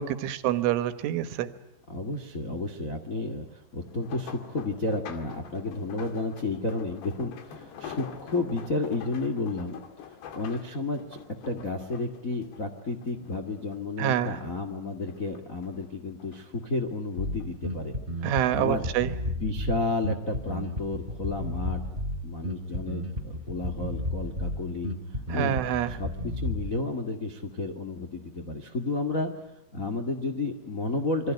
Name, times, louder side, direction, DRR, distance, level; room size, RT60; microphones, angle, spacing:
voice 1, 0.0-1.5 14.0-14.4 18.2-19.1 25.3-25.9, right 11 dB, 80° right, 11 dB, 3.7 m, -26 dB
voice 2, 1.9-9.8 10.3-11.2 11.4-17.9 18.2-18.9 19.3-21.8 22.2-24.9 25.3-25.6 25.9-29.3 29.7-31.3, left 2 dB, 85° left, 5 dB, 0.7 m, -32 dB
sound 1, 3.8-13.4 13.7-14.7 15.1-16.4 17.2-17.5 17.9-18.0, left 7 dB, 60° left, 4.0 m, -45 dB
Bass guitar, 17.2-26.8, left 1 dB, 15° right, 1.9 m, -33 dB
27.5 x 23.5 x 9.3 m, 0.81 s
omnidirectional pair, 5.6 m